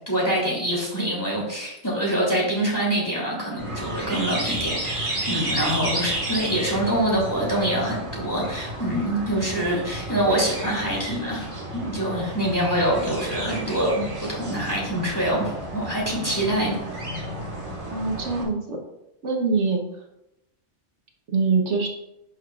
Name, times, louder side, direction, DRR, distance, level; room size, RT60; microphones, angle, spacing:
voice 1, 0.0-11.5 11.7-16.8, right 1 dB, 15° left, -4 dB, 2.8 m, -25 dB
sound 1, 3.6-18.4, right 1 dB, 25° right, 1.6 m, -32 dB
voice 2, 17.9-18.8 19.2-19.8 21.3-21.9, right 4 dB, 75° right, 2 dB, 1.4 m, -23 dB
10.5 x 6.4 x 2.4 m, 0.87 s
omnidirectional pair, 1.2 m